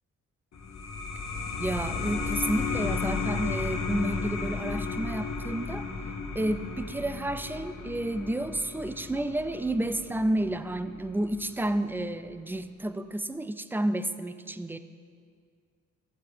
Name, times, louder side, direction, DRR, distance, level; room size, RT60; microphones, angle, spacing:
sound 1, 0.5-11.7, left 4 dB, 60° left, 1.4 m, -34 dB
voice 1, 1.6-5.8 6.3-14.8, right 1 dB, 5° right, 11 dB, 0.4 m, -31 dB
14.0 x 8.0 x 3.5 m, 2.1 s
cardioid pair, 90°, 30 cm